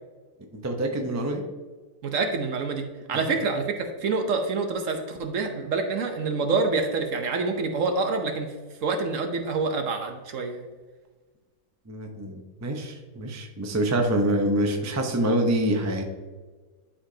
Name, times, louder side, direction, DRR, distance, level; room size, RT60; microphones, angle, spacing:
voice 1, 0.5-1.4 3.1-3.3 11.9-16.0, right 1 dB, 20° right, 3 dB, 0.5 m, -26 dB
voice 2, 2.0-2.8 3.1-8.5 8.8-10.6, right 4 dB, 60° right, 4 dB, 1.0 m, -27 dB
11.5 x 5.0 x 2.8 m, 1.3 s
omnidirectional pair, 1.7 m